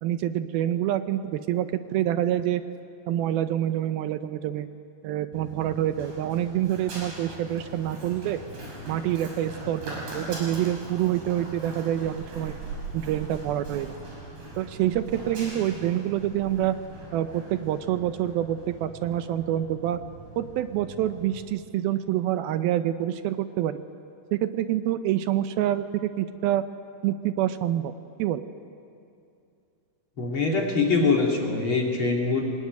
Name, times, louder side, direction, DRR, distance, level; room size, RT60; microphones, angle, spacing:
voice 1, 0.0-2.6 3.1-4.7 5.0-8.4 8.9-12.6 12.9-13.9 14.6-16.8 17.1-20.0 20.4-23.8 24.3-26.6 27.0-27.9 28.2-28.4, right 12 dB, 80° right, 10 dB, 2.5 m, -27 dB
Run, 5.3-21.4, right 2 dB, 65° right, 7.6 m, -41 dB
voice 2, 30.2-32.4, left 4 dB, 35° left, 0 dB, 2.7 m, -23 dB
26.5 x 19.5 x 9.4 m, 2.5 s
omnidirectional pair, 4.5 m